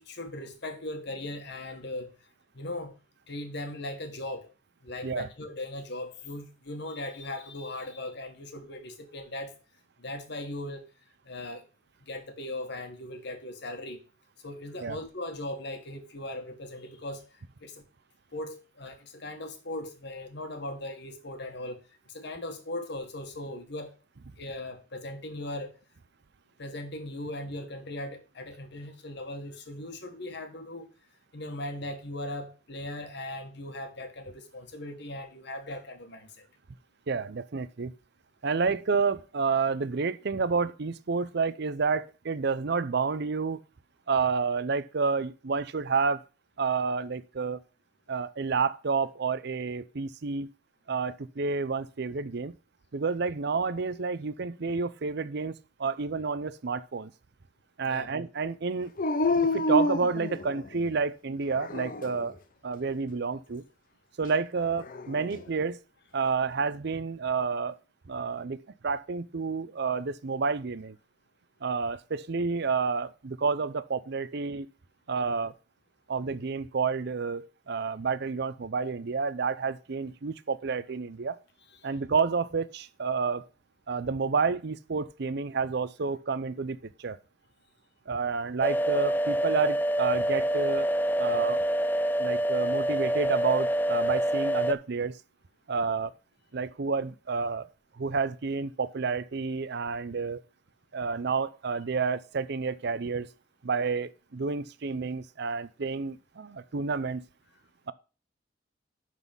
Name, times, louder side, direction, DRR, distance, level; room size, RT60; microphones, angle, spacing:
voice 1, 0.0-2.1 2.5-2.9 3.3-4.5 4.8-9.5 10.0-10.8 11.3-11.6 12.1-14.0 14.4-17.2 17.6-17.8 18.3-21.8 22.1-23.9 24.4-25.7 26.6-30.9 31.3-36.5 57.9-58.1 81.8-81.9, left 1 dB, 65° left, 1.7 m, -38 dB
voice 2, 37.1-37.9 38.4-43.6 44.1-46.2 46.6-47.6 48.1-50.5 50.9-52.6 52.9-55.5 55.8-57.1 57.8-58.9 59.4-62.4 62.6-63.6 64.2-65.8 66.1-67.8 68.1-68.6 68.8-71.0 71.6-74.7 75.1-75.5 76.1-81.4 81.8-83.5 83.9-87.2 88.1-90.9 91.2-91.6 92.2-95.2 95.7-96.1 96.5-97.7 98.0-100.4 100.9-103.3 103.6-107.2, right 5 dB, 60° right, 0.6 m, -29 dB
Dog, 59.0-60.9 61.5-62.3 64.6-65.4, left 2 dB, 50° left, 0.6 m, -29 dB
sound 1, 88.6-94.7, right 1 dB, 10° left, 0.3 m, -26 dB
11.0 x 4.1 x 5.4 m
head